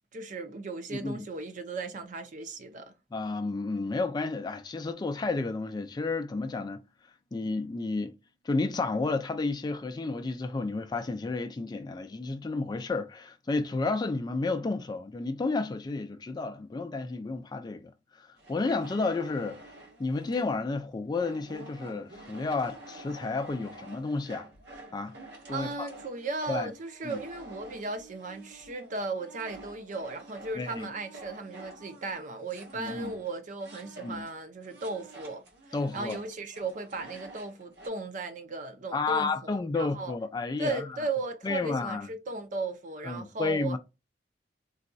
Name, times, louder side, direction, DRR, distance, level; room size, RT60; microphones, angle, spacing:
voice 1, 0.1-2.9 25.5-40.2 40.6-43.8, right 3 dB, 45° right, 0.6 m, -36 dB
voice 2, 0.9-1.3 3.1-6.8 7.3-8.1 8.4-19.6 20.0-24.5 24.9-25.2 25.5-25.9 26.5-26.7 27.0-27.2 30.6-30.9 32.7-33.1 34.0-34.3 35.7-36.2 38.9-40.9 41.4-42.1 43.0-43.8, left 3 dB, 25° left, 0.3 m, -31 dB
sound 1, 18.4-20.6 21.2-34.4 34.6-37.9, right 1 dB, 65° right, 1.2 m, -48 dB
4.0 x 2.2 x 2.6 m
head